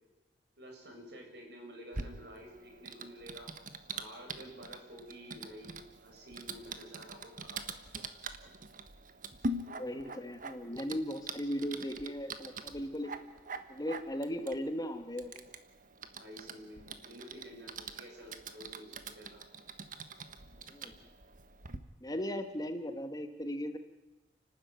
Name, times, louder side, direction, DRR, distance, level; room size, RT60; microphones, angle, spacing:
voice 1, 0.6-3.5 3.9-7.8 16.1-19.4, equal, 70° right, 1 dB, 7.2 m, -50 dB
Typing, 1.9-21.8, right 2 dB, 50° right, 1.4 m, -44 dB
voice 2, 9.8-13.1 13.7-15.3 20.7-20.9 22.0-23.8, equal, 20° left, 8 dB, 1.6 m, -37 dB
29.5 x 13.0 x 9.4 m, 1.1 s
head